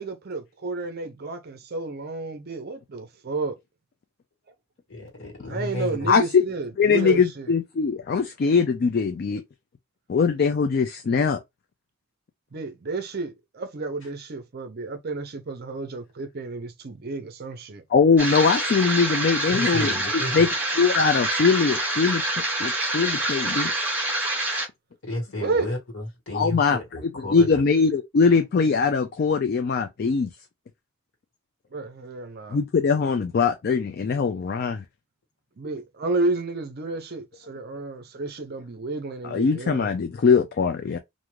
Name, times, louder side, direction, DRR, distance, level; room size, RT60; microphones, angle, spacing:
voice 1, 0.0-3.6 5.5-7.5 12.5-17.8 25.4-25.7 31.7-32.6 35.6-39.9, right 3 dB, 45° right, 0.5 m, -31 dB
voice 2, 4.9-6.1 19.5-20.4 25.0-27.6, left 1 dB, 60° left, 1.5 m, -32 dB
voice 3, 6.1-6.4 6.8-9.4 10.1-11.4 17.9-19.9 20.3-20.5 20.8-22.2 22.6-23.7 26.3-26.8 27.3-30.3 32.5-34.8 39.2-41.0, left 5 dB, 45° left, 0.3 m, -21 dB
sound 1, 18.2-24.6, right 1 dB, 10° right, 0.8 m, -26 dB
2.5 x 2.4 x 3.1 m
head